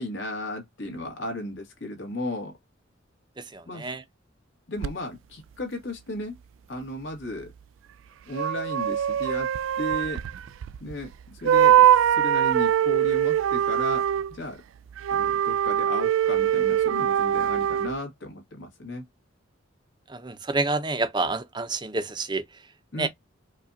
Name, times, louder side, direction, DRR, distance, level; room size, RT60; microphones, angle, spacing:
voice 1, 0.0-2.6 3.7-3.9 4.7-6.4 6.7-7.5 8.3-9.5 9.8-10.2 10.8-14.0 14.3-14.6 15.1-19.1 22.9-23.1, left 1 dB, 75° left, 1.7 m, -35 dB
voice 2, 3.4-4.0 20.1-22.4 22.9-23.1, right 3 dB, 25° right, 0.6 m, -28 dB
sound 1, 4.8-4.9 8.3-11.1 11.4-14.3 15.0-18.0, right 10 dB, 85° right, 0.3 m, -22 dB
4.9 x 2.4 x 2.6 m
head